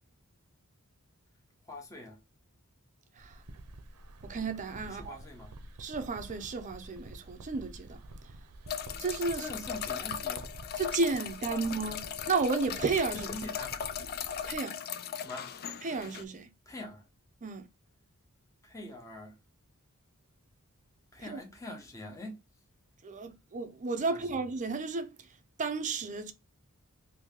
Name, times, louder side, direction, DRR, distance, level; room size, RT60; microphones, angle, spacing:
voice 1, 1.6-2.2 4.8-5.5 9.3-10.5 11.5-11.8 13.1-13.9 15.2-15.5 16.7-17.1 18.6-19.4 21.1-22.4 24.1-24.3, left 1 dB, 15° left, 0.8 m, -44 dB
sound 1, 3.2-14.6, right 1 dB, 80° right, 0.6 m, -49 dB
voice 2, 4.2-5.1 5.8-8.0 9.0-9.5 10.8-13.3 14.4-14.8 15.8-16.5 17.4-17.7 21.3-21.4 23.0-25.1 25.6-26.3, right 4 dB, 35° right, 0.5 m, -33 dB
sound 2, 8.7-16.2, left 8 dB, 45° left, 0.4 m, -38 dB
2.9 x 2.7 x 3.5 m
head